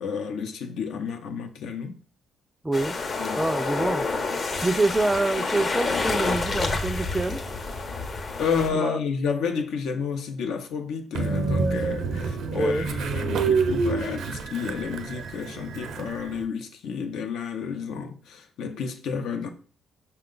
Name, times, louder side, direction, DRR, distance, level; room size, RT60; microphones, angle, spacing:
voice 1, 0.0-2.0 3.2-3.5 8.4-19.5, left 6 dB, 80° left, 0.6 m, -31 dB
voice 2, 2.6-2.9 3.4-4.1 4.6-7.4 8.7-9.0 12.5-12.9, right 2 dB, 15° right, 0.4 m, -26 dB
sound 1, 2.7-8.7, left 3 dB, 40° left, 0.7 m, -28 dB
Train, 11.1-16.4, right 4 dB, 75° right, 0.5 m, -27 dB
5.4 x 2.3 x 3.8 m
cardioid pair, 90°, 0 cm